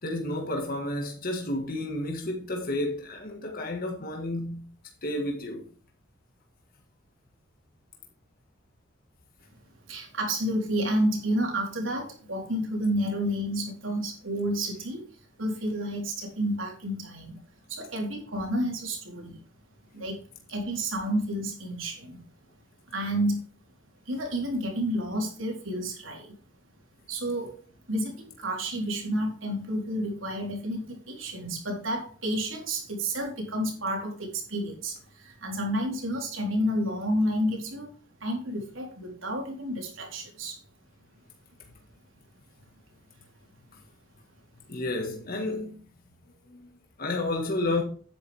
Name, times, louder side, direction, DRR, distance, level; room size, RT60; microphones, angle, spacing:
voice 1, 0.0-4.7 5.0-5.7 44.7-45.8 46.4-47.8, left 2 dB, 50° left, 1.8 m, -31 dB
voice 2, 9.9-17.4 17.7-19.4 19.9-20.2 20.5-22.2 22.9-23.4 24.1-26.3 27.1-27.5 27.9-37.9 38.2-40.6, equal, 90° right, 4.0 m, -30 dB
10.5 x 9.4 x 3.5 m
head